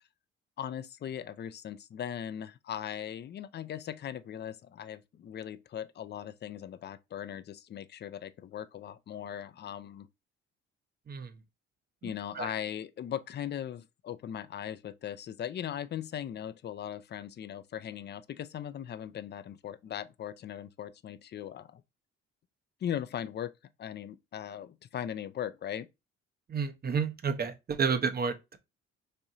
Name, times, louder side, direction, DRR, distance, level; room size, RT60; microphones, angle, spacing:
voice 1, 0.6-10.1 12.0-21.8 22.8-23.5 23.8-25.9, left 9 dB, 35° left, 0.4 m, -39 dB
voice 2, 12.0-12.5 26.5-28.6, right 5 dB, 30° right, 0.7 m, -31 dB
4.3 x 2.6 x 2.5 m
hypercardioid pair, 55°, 31 cm